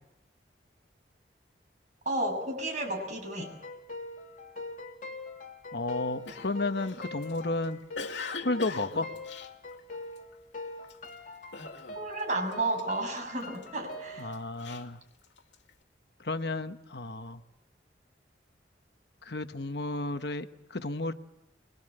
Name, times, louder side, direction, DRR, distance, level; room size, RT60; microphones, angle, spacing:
voice 1, 2.1-3.5 11.9-14.3, right 2 dB, 40° right, 2 dB, 7.5 m, -32 dB
sound 1, 3.4-14.4, left 2 dB, 45° left, 3.1 m, -43 dB
voice 2, 5.7-7.8 8.4-9.1 14.2-15.0 16.2-17.4 19.2-21.1, left 2 dB, 65° left, 9 dB, 1.1 m, -32 dB
Cough, 6.2-10.3 10.8-11.1 11.5-12.2 12.5-13.7 14.2-15.7, left 4 dB, 90° left, 2.4 m, -42 dB
23.0 x 23.0 x 7.9 m, 0.88 s
head